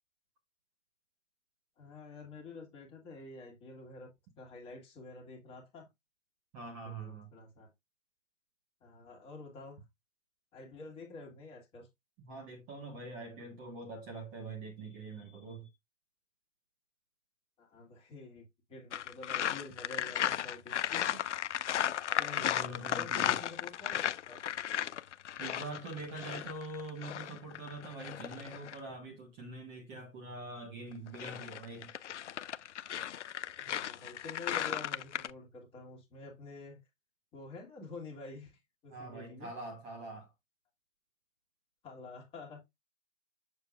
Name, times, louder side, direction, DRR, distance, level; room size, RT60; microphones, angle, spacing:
voice 1, 1.8-4.1 4.4-5.9 6.8-7.7 8.8-9.8 10.5-11.9 17.6-18.4 18.7-21.2 22.2-22.6 22.9-24.4 33.5-36.8 37.3-39.5 41.8-42.6, left 3 dB, 15° left, 1.7 m, -48 dB
voice 2, 6.5-7.3 12.2-15.7 22.4-23.4 25.4-31.9 38.9-40.3, right 2 dB, 20° right, 1.1 m, -44 dB
sound 1, 18.9-28.8 30.9-35.3, left 10 dB, 65° left, 0.5 m, -35 dB
6.7 x 6.5 x 2.4 m
hypercardioid pair, 140°, 38 cm